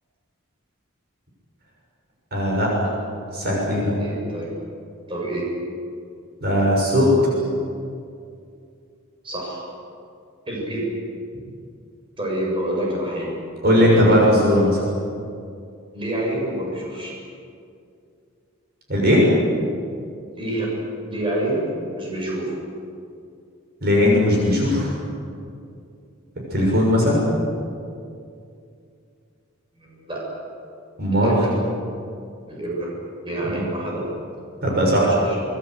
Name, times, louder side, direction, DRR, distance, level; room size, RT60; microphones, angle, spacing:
voice 1, 2.3-2.9 3.3-3.9 6.4-7.1 13.6-14.8 18.9-19.2 23.8-24.9 26.5-27.2 31.0-31.3 33.4-33.6 34.6-35.1, equal, 50° right, -2 dB, 6.6 m, -18 dB
voice 2, 4.0-4.5 5.1-5.5 9.2-9.7 10.5-10.9 12.2-13.4 13.7-14.2 15.9-17.1 20.3-20.7 21.1-22.6 29.8-30.2 31.1-31.5 32.5-34.1 34.9-35.3, right 1 dB, 25° right, -3 dB, 7.6 m, -27 dB
25.5 x 21.0 x 8.1 m, 2.4 s
head